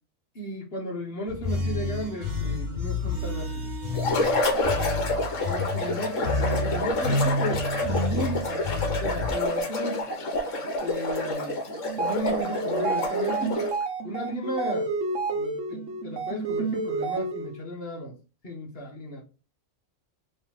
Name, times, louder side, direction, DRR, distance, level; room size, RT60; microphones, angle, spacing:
voice 1, 0.3-3.7 5.4-10.1 10.8-11.6 12.0-13.7 14.0-14.9 15.3-18.2 18.4-19.2, left 1 dB, 45° left, 1.3 m, -34 dB
sound 1, 1.3-9.3, left 2 dB, 35° right, 1.3 m, -30 dB
sound 2, 3.9-13.8, left 1 dB, 65° left, 1.5 m, -28 dB
sound 3, 11.8-17.6, right 3 dB, 65° right, 1.2 m, -30 dB
3.8 x 2.9 x 4.1 m
omnidirectional pair, 1.4 m